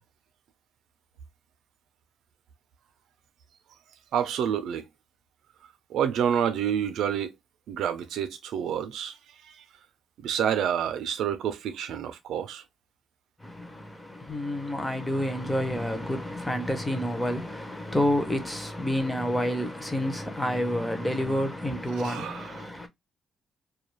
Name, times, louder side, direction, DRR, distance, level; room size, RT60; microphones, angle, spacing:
voice 1, 4.1-4.8 5.9-7.3 7.7-9.2 10.2-12.6 22.0-22.7, right 9 dB, 85° right, 0.4 m, -28 dB
voice 2, 13.4-22.9, left 1 dB, 5° left, 0.5 m, -29 dB
2.3 x 2.2 x 3.0 m
cardioid pair, 160°, 0 cm